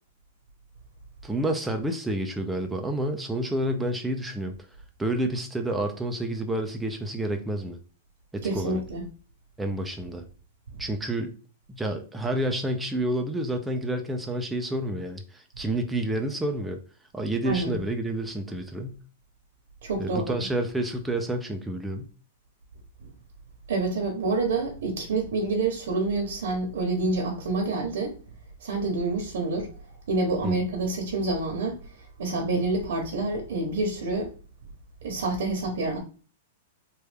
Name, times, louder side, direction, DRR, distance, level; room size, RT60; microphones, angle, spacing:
voice 1, 1.2-4.5 5.0-7.8 8.3-8.8 9.6-10.2 10.8-11.3 11.7-16.8 17.1-19.0 20.0-22.1 30.4-30.6, right 1 dB, 5° right, 0.3 m, -29 dB
voice 2, 8.4-9.0 10.7-10.8 17.4-17.8 19.8-20.3 23.7-28.2 28.6-29.7 30.1-34.3 35.0-36.0, right 3 dB, 75° right, 0.8 m, -27 dB
3.1 x 2.2 x 3.3 m
supercardioid pair, 165°, 0 cm